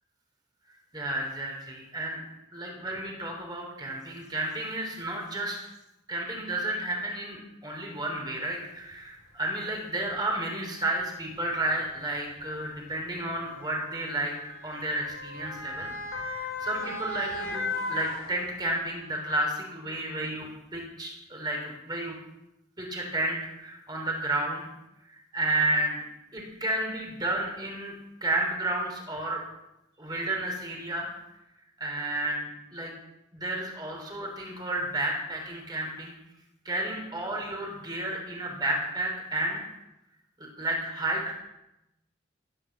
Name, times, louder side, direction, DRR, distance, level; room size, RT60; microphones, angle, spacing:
voice 1, 0.9-2.2 2.5-5.6 6.1-14.3 14.6-22.2 22.8-24.7 25.1-26.0 26.3-27.9 28.2-29.4 30.0-31.1 31.8-32.9 33.3-36.1 36.6-39.6 40.6-41.4, right 1 dB, 20° right, 0 dB, 3.4 m, -32 dB
Motor vehicle (road) / Siren, 8.9-9.0 10.0-10.2 11.3-18.9 19.3-19.4, left 3 dB, 85° left, 3.2 m, -37 dB
16.0 x 8.8 x 7.5 m, 0.90 s
head